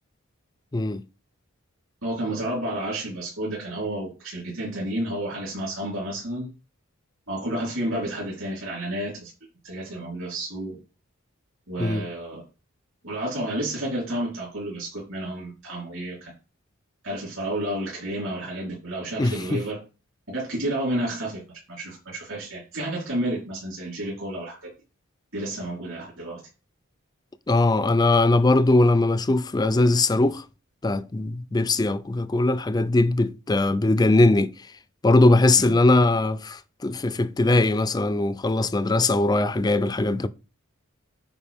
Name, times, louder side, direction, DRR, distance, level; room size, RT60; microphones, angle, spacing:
voice 1, 2.0-6.5 7.3-9.3 9.6-10.7 11.7-12.4 13.0-16.3 17.0-19.8 20.3-21.4 21.7-24.7 25.3-26.4 35.6-35.7, right 1 dB, 70° right, 4.0 m, -31 dB
voice 2, 19.2-19.6 27.5-30.4 30.8-34.5 35.0-40.3, left 2 dB, 20° left, 0.4 m, -20 dB
9.5 x 4.8 x 3.5 m
head